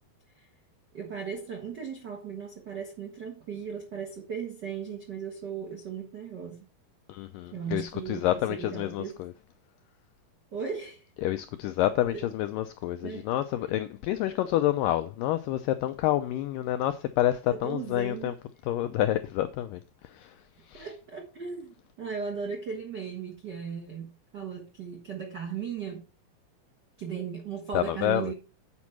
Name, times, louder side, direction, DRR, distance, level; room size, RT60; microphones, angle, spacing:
voice 1, 0.9-6.6 7.5-9.1 10.5-11.1 12.1-12.3 13.0-13.3 17.5-18.4 20.7-26.1 27.0-28.3, right 6 dB, 75° right, 0.9 m, -37 dB
voice 2, 7.1-9.3 11.2-18.3 18.7-19.8 20.1-20.3 20.7-20.9 27.7-28.3, left 13 dB, 85° left, 1.9 m, -28 dB
8.5 x 5.2 x 5.9 m
omnidirectional pair, 4.5 m